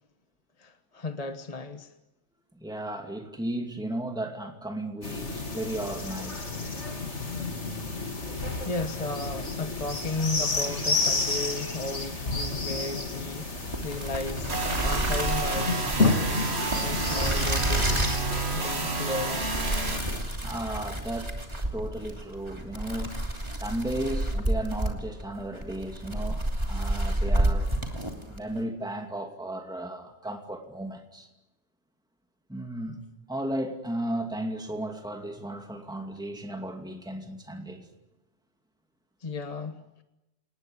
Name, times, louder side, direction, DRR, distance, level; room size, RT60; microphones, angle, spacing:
voice 1, 0.6-1.9 8.6-14.5 14.8-18.2 18.5-19.5 39.2-40.0, left 3 dB, 35° left, 1.3 m, -35 dB
voice 2, 2.5-6.5 20.4-21.4 21.7-23.2 23.6-26.4 26.7-27.8 28.3-31.3 32.5-33.0 33.3-37.9, right 1 dB, 5° right, 2.5 m, -34 dB
sound 1, 5.0-20.2, left 3 dB, 75° left, 3.1 m, -31 dB
sound 2, 13.6-28.5, right 1 dB, 25° right, 3.0 m, -30 dB
sound 3, 14.5-20.0, right 3 dB, 60° right, 2.4 m, -30 dB
28.0 x 19.5 x 10.0 m
omnidirectional pair, 1.2 m